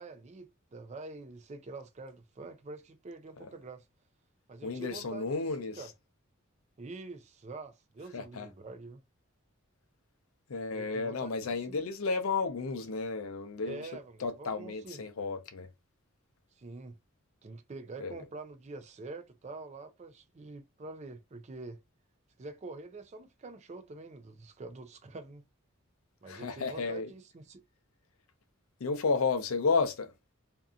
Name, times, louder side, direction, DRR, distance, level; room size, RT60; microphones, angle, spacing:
voice 1, 0.0-3.9 4.5-5.9 6.8-9.0 10.7-11.8 13.6-15.0 16.6-17.0 17.4-21.8 22.4-25.4 26.2-27.6, right 3 dB, 30° right, 0.4 m, -46 dB
voice 2, 4.6-5.8 8.1-8.5 10.5-13.9 14.2-15.7 18.0-18.2 26.3-27.1 28.8-30.1, left 4 dB, 80° left, 0.5 m, -32 dB
2.7 x 2.4 x 2.4 m
head